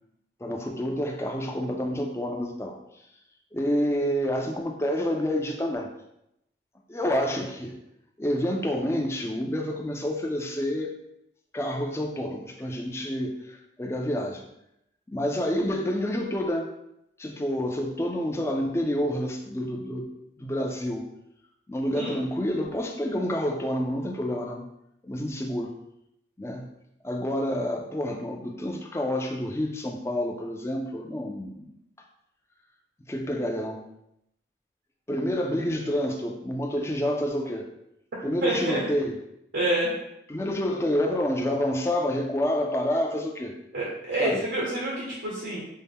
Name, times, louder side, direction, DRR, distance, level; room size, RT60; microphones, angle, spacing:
voice 1, 0.4-2.8 3.5-5.9 6.9-7.8 8.2-10.9 11.5-14.4 15.1-16.7 17.2-20.1 20.4-21.1 21.7-24.6 25.0-25.7 26.4-26.7 27.0-31.7 33.1-33.8 35.1-37.7 38.2-39.1 40.3-43.5 44.2-44.4, equal, 15° left, 2 dB, 0.4 m, -28 dB
voice 2, 38.4-38.8 39.5-40.0 43.7-45.6, right 1 dB, 85° right, -5 dB, 0.9 m, -27 dB
5.5 x 2.1 x 3.5 m, 0.81 s
head